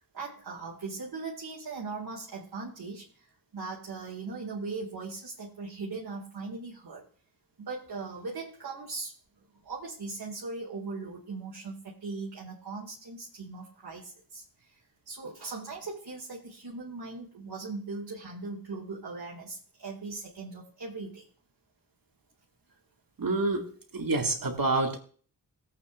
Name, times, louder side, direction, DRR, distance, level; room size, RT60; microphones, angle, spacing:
voice 1, 0.1-7.0 7.6-9.1 9.5-14.8 15.1-21.3, right 3 dB, 80° right, -4 dB, 2.3 m, -39 dB
voice 2, 23.2-25.0, right 2 dB, 65° right, 2 dB, 2.1 m, -28 dB
18.5 x 8.4 x 2.5 m, 0.43 s
cardioid pair, 50°, 37 cm